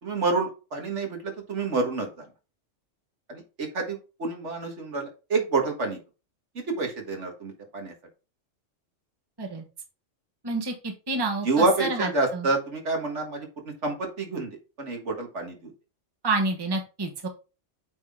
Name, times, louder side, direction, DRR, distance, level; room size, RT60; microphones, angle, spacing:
voice 1, 0.0-2.3 3.3-6.0 6.6-7.9 11.4-15.7, right 3 dB, 65° right, 2 dB, 1.9 m, -28 dB
voice 2, 10.4-12.5 16.2-17.3, right 3 dB, 20° right, 1 dB, 1.1 m, -29 dB
8.2 x 3.7 x 3.6 m, 0.32 s
omnidirectional pair, 1.3 m